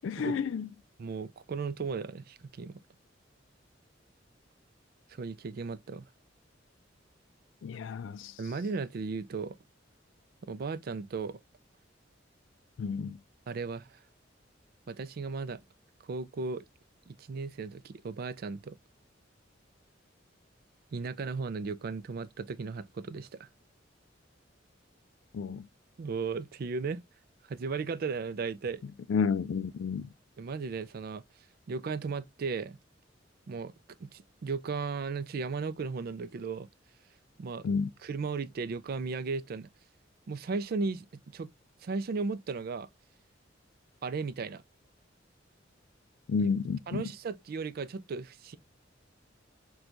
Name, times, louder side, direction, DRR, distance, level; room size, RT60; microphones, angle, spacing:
voice 1, 0.0-0.7 7.6-8.3 12.8-13.2 25.3-25.7 29.1-30.1 37.6-37.9 46.3-47.0, left 5 dB, 80° left, 0.3 m, -31 dB
voice 2, 1.0-2.8 5.1-6.1 8.4-9.6 10.5-11.4 13.5-14.0 14.9-15.6 16.0-16.6 17.1-18.8 20.9-23.5 26.0-27.0 27.5-28.8 30.4-31.2 31.7-32.8 33.5-33.7 34.0-36.7 37.4-37.7 38.0-39.7 40.3-41.1 41.3-41.5 41.8-42.9 44.0-44.6 46.9-48.6, right 4 dB, 55° right, 0.4 m, -35 dB
6.0 x 2.3 x 2.5 m
head